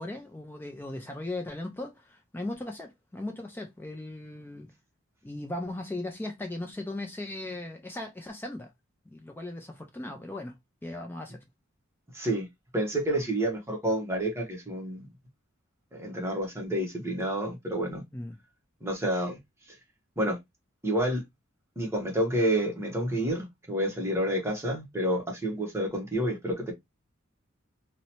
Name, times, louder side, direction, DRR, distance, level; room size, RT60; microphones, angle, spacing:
voice 1, 0.0-4.7 5.2-8.7 9.1-10.5 10.8-11.4 18.1-18.4, left 2 dB, 10° left, 0.4 m, -38 dB
voice 2, 12.1-12.5 12.7-15.1 15.9-18.0 18.8-19.4 20.2-20.4 20.8-21.2 21.8-26.7, right 1 dB, 15° right, 0.8 m, -29 dB
2.7 x 2.0 x 2.8 m
head